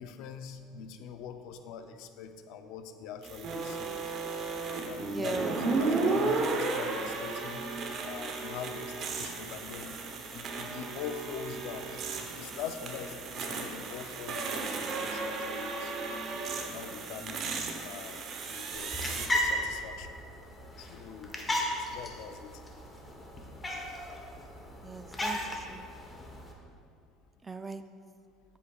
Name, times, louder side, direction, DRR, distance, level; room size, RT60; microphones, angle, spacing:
voice 1, 0.0-4.0 4.6-7.6 8.0-10.0 10.3-12.0 12.3-16.1 16.6-20.2 20.8-22.5, left 7 dB, 70° left, 8 dB, 0.5 m, -43 dB
sound 1, 3.2-19.3, right 3 dB, 45° right, 0.9 m, -34 dB
voice 2, 5.1-5.5 24.8-25.9 27.4-27.8, right 3 dB, 15° right, 10 dB, 0.3 m, -39 dB
sound 2, 18.7-26.5, left 1 dB, 15° left, 1.1 m, -36 dB
10.0 x 8.2 x 2.4 m, 2.3 s
cardioid pair, 130°, 0 cm